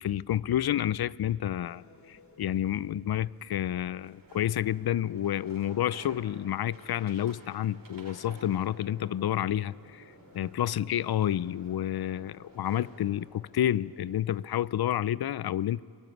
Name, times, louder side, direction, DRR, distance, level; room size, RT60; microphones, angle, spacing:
voice 1, 0.0-10.0 10.3-15.8, left 11 dB, 65° left, 0.5 m, -29 dB
sound 1, 1.4-14.7, left 2 dB, 45° left, 3.0 m, -58 dB
sound 2, 3.8-13.2, right 2 dB, 50° right, 3.7 m, -54 dB
26.5 x 19.0 x 9.2 m
wide cardioid pair, 115°, 41 cm